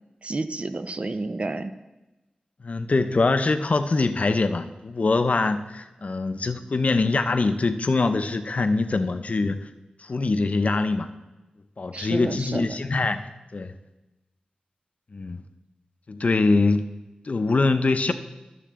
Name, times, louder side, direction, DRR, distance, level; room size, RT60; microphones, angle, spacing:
voice 1, 0.2-1.7 11.9-12.8, right 2 dB, 45° right, 11 dB, 0.5 m, -30 dB
voice 2, 2.6-9.7 10.0-11.1 11.8-13.7 15.1-15.4 16.1-16.8 17.2-18.1, left 3 dB, 55° left, 9 dB, 0.6 m, -23 dB
12.0 x 6.8 x 3.7 m, 1.0 s
wide cardioid pair, 60°, 3 cm